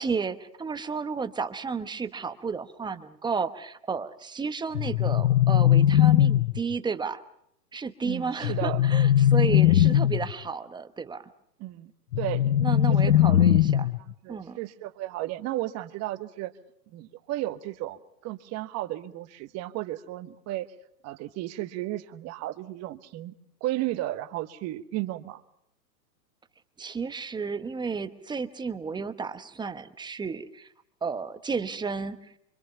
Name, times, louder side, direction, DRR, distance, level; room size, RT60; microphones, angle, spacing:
voice 1, 0.0-7.2 7.7-11.2 12.6-13.9 14.3-14.6 26.8-30.7 31.0-32.4, right 5 dB, 10° right, 10 dB, 1.0 m, -32 dB
sound 1, 4.7-6.7 8.4-10.3 12.1-14.1, left 11 dB, 75° left, 0.8 m, -20 dB
voice 2, 8.0-8.8 11.6-11.9 12.2-12.6 12.9-13.1 14.1-16.5 16.9-20.7 21.0-23.3 23.6-25.4, right 16 dB, 30° right, 10 dB, 1.4 m, -34 dB
26.0 x 24.5 x 5.7 m, 0.72 s
hypercardioid pair, 125°, 50 cm